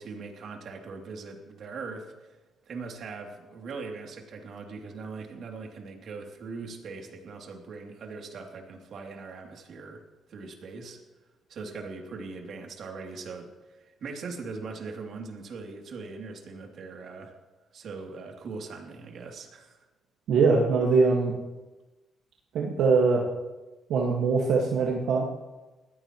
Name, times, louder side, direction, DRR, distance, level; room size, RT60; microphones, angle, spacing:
voice 1, 0.0-2.3 2.7-10.0 10.3-11.0 11.5-17.3 17.7-19.8, right 4 dB, 65° right, 1 dB, 3.0 m, -40 dB
voice 2, 20.3-21.3 22.5-23.2 23.9-25.2, right 4 dB, 80° right, -2 dB, 1.8 m, -22 dB
21.0 x 15.5 x 3.1 m, 1.1 s
cardioid pair, 90°, 0 cm